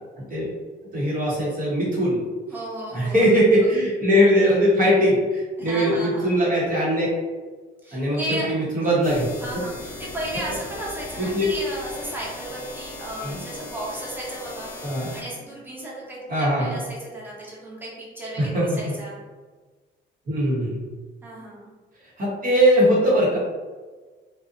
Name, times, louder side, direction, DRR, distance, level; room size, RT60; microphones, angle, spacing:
voice 1, 0.9-2.2 2.9-7.1 7.9-9.3 11.2-11.5 13.2-13.4 14.8-15.1 16.3-16.8 18.4-18.6 20.3-20.8 22.2-23.4, equal, 45° right, -7 dB, 1.1 m, -20 dB
voice 2, 2.5-3.2 3.6-3.7 5.6-6.4 7.8-8.9 9.4-19.2 21.2-21.7, right 1 dB, 10° right, -6 dB, 0.9 m, -34 dB
sound 1, 9.0-15.2, left 2 dB, 50° left, 0.6 m, -38 dB
2.6 x 2.2 x 2.5 m, 1.3 s
cardioid pair, 90°, 20 cm